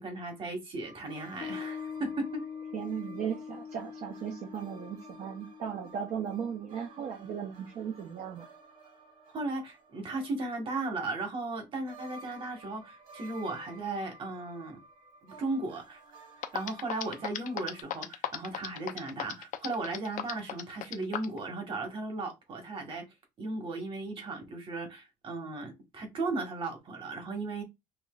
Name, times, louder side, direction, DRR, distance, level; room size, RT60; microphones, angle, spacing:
voice 1, 0.0-2.4 9.3-14.8 15.2-16.0 16.5-23.1 23.4-27.6, right 2 dB, 40° right, 1.4 m, -36 dB
sound 1, 0.8-11.6 11.9-17.8, right 3 dB, 75° right, 2.6 m, -54 dB
Piano, 1.4-8.2, left 6 dB, 25° left, 0.4 m, -44 dB
voice 2, 2.7-8.5, right 8 dB, 55° right, 0.7 m, -37 dB
sound 2, 16.1-16.2 16.4-21.4, left 10 dB, 65° left, 0.7 m, -35 dB
5.7 x 2.5 x 2.4 m
cardioid pair, 150°, 14 cm